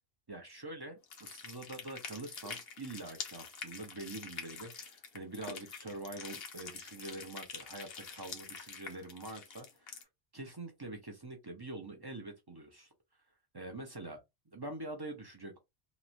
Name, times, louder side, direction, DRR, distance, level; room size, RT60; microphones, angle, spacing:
voice 1, 0.3-10.1 10.3-12.9 13.5-14.2 14.5-15.6, right 2 dB, 30° right, 0.5 m, -45 dB
sound 1, 1.0-10.0, left 6 dB, 70° left, 0.9 m, -46 dB
3.0 x 2.0 x 2.5 m
omnidirectional pair, 1.1 m